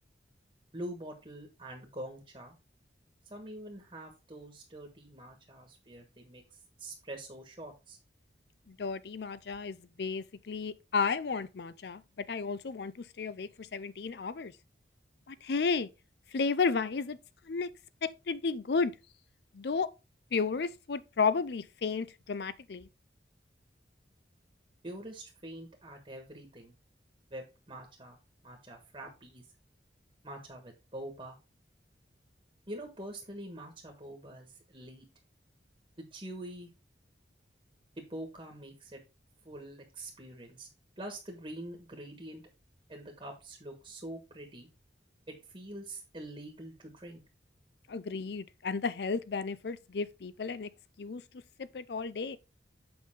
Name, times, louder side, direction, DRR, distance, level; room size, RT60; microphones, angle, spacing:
voice 1, 0.7-2.5 3.3-6.4 6.8-8.0 24.8-26.7 27.3-29.5 30.2-31.4 32.7-35.0 36.0-36.7 38.0-39.0 39.4-40.7 41.0-42.4 42.9-44.7 45.3-47.2, right 1 dB, 30° right, 1.5 m, -45 dB
voice 2, 8.7-14.5 15.3-15.9 16.3-17.2 17.4-17.7 18.0-18.9 19.5-19.9 20.3-22.9 47.9-50.7 51.0-51.2 51.6-52.4, left 5 dB, 65° left, 0.5 m, -33 dB
7.8 x 5.6 x 3.7 m
head